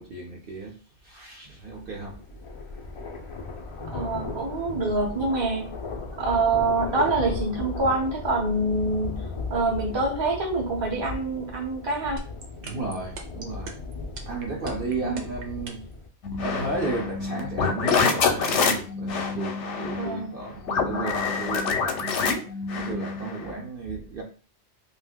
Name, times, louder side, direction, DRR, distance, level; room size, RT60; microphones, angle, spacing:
voice 1, 0.0-2.2 12.6-13.8 14.2-15.8 16.4-24.2, right 3 dB, 55° right, 0.8 m, -34 dB
sound 1, 1.6-16.1, left 3 dB, 45° left, 0.4 m, -36 dB
voice 2, 3.9-5.7 6.2-9.2 9.5-12.2 15.0-15.2 19.9-20.3, right 2 dB, 25° right, 0.7 m, -26 dB
sound 2, 12.2-15.9, right 4 dB, 80° right, 1.0 m, -38 dB
sound 3, 16.2-23.5, left 5 dB, 85° left, 0.9 m, -26 dB
2.7 x 2.4 x 3.4 m
omnidirectional pair, 1.2 m